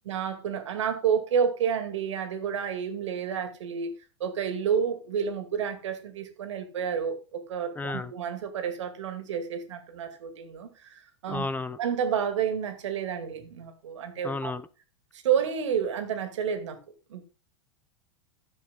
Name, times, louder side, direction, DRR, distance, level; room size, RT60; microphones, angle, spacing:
voice 1, 0.1-3.9 4.2-11.5 11.8-14.5 15.2-16.8 17.1-17.2, right 7 dB, 80° right, 2.3 m, -30 dB
voice 2, 7.8-8.1 11.3-11.8 14.2-14.6, left 3 dB, 10° left, 0.6 m, -32 dB
10.5 x 7.3 x 3.9 m
hypercardioid pair, 120°, 15 cm